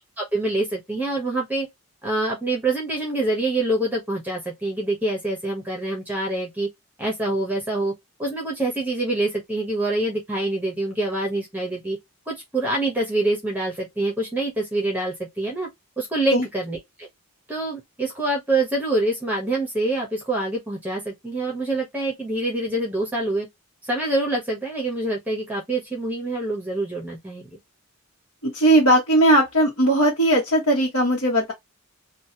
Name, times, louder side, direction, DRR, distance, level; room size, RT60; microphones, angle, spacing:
voice 1, 0.2-1.7 2.0-6.7 7.0-7.9 8.2-12.0 12.3-15.7 16.0-17.1 17.5-23.5 23.8-27.6, right 2 dB, 5° right, 0.9 m, -25 dB
voice 2, 28.4-31.5, right 1 dB, 65° left, 1.2 m, -18 dB
3.1 x 2.4 x 2.7 m
head